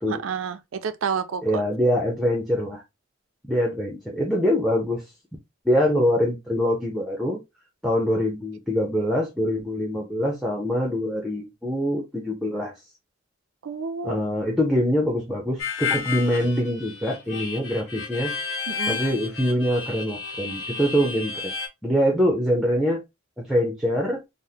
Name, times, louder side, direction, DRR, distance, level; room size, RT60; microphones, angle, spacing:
voice 1, 0.1-1.4 13.6-14.2 18.7-19.0, right 6 dB, 85° right, 0.4 m, -29 dB
voice 2, 1.4-2.8 3.5-5.0 5.6-7.4 7.8-12.7 14.0-18.3 18.9-21.3 21.8-23.0 23.4-24.2, equal, ahead, 0.7 m, -24 dB
Harmonica, 15.6-21.7, left 5 dB, 70° left, 1.0 m, -32 dB
3.6 x 2.1 x 2.8 m
head